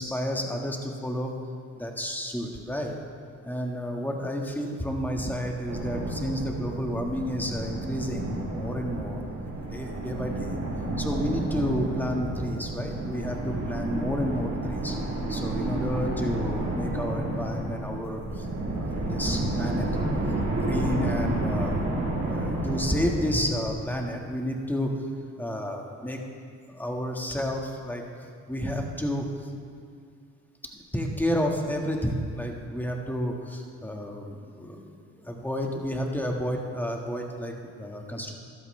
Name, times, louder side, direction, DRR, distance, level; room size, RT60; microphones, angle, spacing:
voice 1, 0.0-1.3 1.8-3.0 3.4-9.2 9.7-10.6 11.0-15.0 15.3-18.5 18.7-19.9 20.6-21.8 22.3-25.1 25.4-26.2 26.7-29.5 30.9-38.3, equal, 5° left, 1 dB, 1.7 m, -31 dB
sound 1, 5.7-24.1, right 2 dB, 65° right, 3.4 m, -30 dB
14.5 x 12.5 x 3.3 m, 2.2 s
cardioid pair, 90°, 30 cm